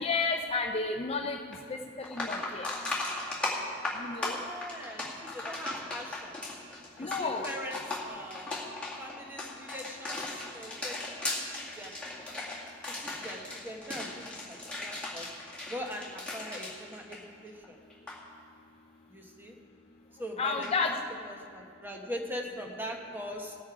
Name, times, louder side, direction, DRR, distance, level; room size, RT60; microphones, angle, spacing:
voice 1, 0.0-1.4 1.7-1.8 2.1-2.7 4.0-4.4 7.0-7.5 20.4-20.9, left 4 dB, 30° left, 4 dB, 0.5 m, -31 dB
sound 1, 1.5-1.6 2.0-17.6 17.9-18.2 20.6-20.7, left 2 dB, 5° left, 2.0 m, -37 dB
voice 2, 4.2-6.3 7.0-8.6 9.0-12.4 12.9-15.3 15.7-17.8 19.1-19.5 20.2-23.6, equal, 10° right, 1 dB, 1.2 m, -42 dB
17.5 x 8.4 x 4.8 m, 2.3 s
head